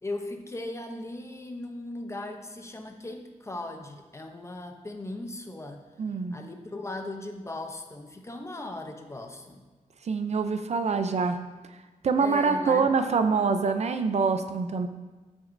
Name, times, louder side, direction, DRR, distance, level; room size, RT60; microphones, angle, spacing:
voice 1, 0.0-5.8 6.3-9.6 12.2-12.9, left 2 dB, 20° left, 5 dB, 0.7 m, -38 dB
voice 2, 6.0-6.4 10.0-11.4 12.0-14.9, right 5 dB, 55° right, 8 dB, 0.5 m, -25 dB
13.5 x 6.1 x 2.6 m, 1.2 s
wide cardioid pair, 150°, 14 cm